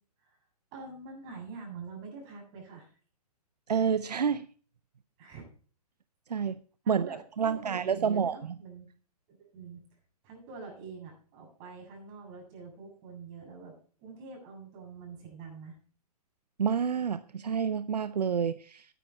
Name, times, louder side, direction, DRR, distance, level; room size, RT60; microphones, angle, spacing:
voice 1, 0.7-2.9 5.2-5.5 6.8-8.9 9.3-9.8 10.2-13.7 14.0-15.8, right 4 dB, 35° right, 1 dB, 7.4 m, -45 dB
voice 2, 3.7-4.5 6.3-6.6 6.9-8.4 16.6-18.9, right 7 dB, 85° right, 14 dB, 0.6 m, -28 dB
11.5 x 10.0 x 4.3 m, 0.42 s
hypercardioid pair, 130°, 20 cm